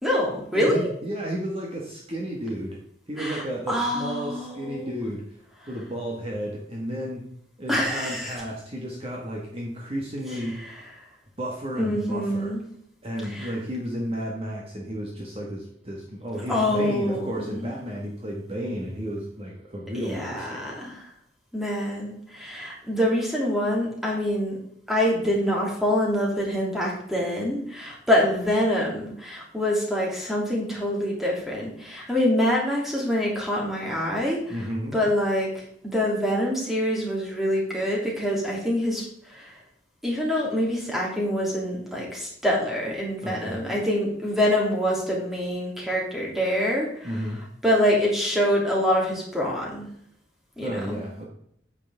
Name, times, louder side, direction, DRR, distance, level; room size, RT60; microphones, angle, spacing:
voice 1, 0.0-0.9 3.2-5.0 7.7-8.3 10.6-10.7 11.8-12.6 13.3-13.5 16.5-17.8 19.9-21.1 21.5-24.6 24.9-34.6 34.9-35.6 35.9-39.6 40.0-47.1 47.6-49.9 50.6-51.0, equal, ahead, -3 dB, 2.9 m, -25 dB
voice 2, 0.5-2.8 3.1-5.4 5.7-7.2 7.6-10.6 11.4-12.5 13.0-20.7 34.5-35.0 43.2-43.6 47.0-47.4 50.6-51.2, equal, 30° right, -2 dB, 1.6 m, -32 dB
9.2 x 8.2 x 3.6 m, 0.69 s
head